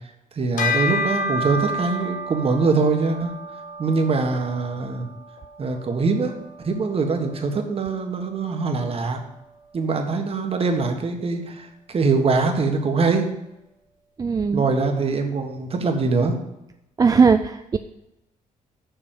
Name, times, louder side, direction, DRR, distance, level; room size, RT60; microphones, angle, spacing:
voice 1, 0.3-3.3 3.8-5.1 5.6-6.3 6.6-9.2 9.7-13.3 14.5-16.4, right 4 dB, 45° right, 4 dB, 1.5 m, -23 dB
Bell, 0.6-10.3, left 1 dB, 70° left, 1.5 m, -32 dB
voice 2, 14.2-14.6 17.0-17.8, right 5 dB, 25° right, 8 dB, 0.4 m, -18 dB
6.9 x 6.2 x 7.6 m, 0.91 s
cardioid pair, 115°, 14 cm